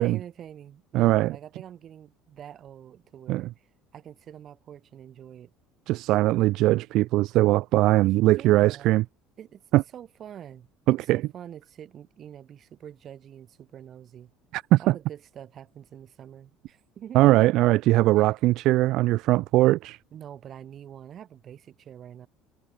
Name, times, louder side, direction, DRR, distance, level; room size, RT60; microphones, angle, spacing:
voice 1, 0.0-3.7 3.9-5.5 8.0-9.0 9.4-9.6 9.9-14.3 14.8-17.2 18.2-18.3 20.1-22.3, right 9 dB, 35° right, 4.8 m, -45 dB
voice 2, 0.9-1.4 3.3-3.5 5.9-9.0 9.7-9.8 10.9-11.2 14.5-14.9 17.1-20.0, right 17 dB, 60° right, 0.7 m, -21 dB
cardioid pair, 150°, 0 cm